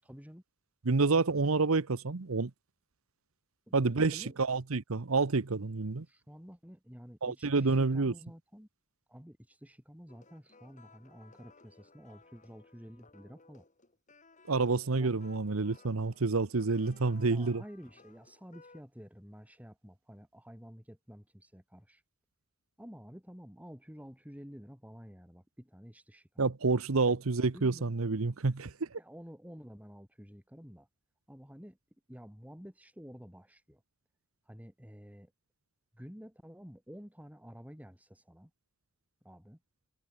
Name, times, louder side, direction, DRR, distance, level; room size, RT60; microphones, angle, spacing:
voice 1, 0.0-0.4 3.7-3.8 4.1-4.4 6.0-8.7 9.1-13.6 14.9-15.3 17.3-22.0 22.8-26.5 27.1-27.2 27.5-28.0 29.0-30.9 31.3-31.8 32.1-33.8 34.4-35.3 35.9-38.5 39.2-39.6, equal, 5° right, 4.4 m, -51 dB
voice 2, 0.9-2.5 3.7-6.0 7.2-8.1 14.5-17.6 26.4-28.7, right 3 dB, 80° right, 0.9 m, -28 dB
sound 1, 10.1-18.8, left 3 dB, 35° left, 6.3 m, -60 dB
head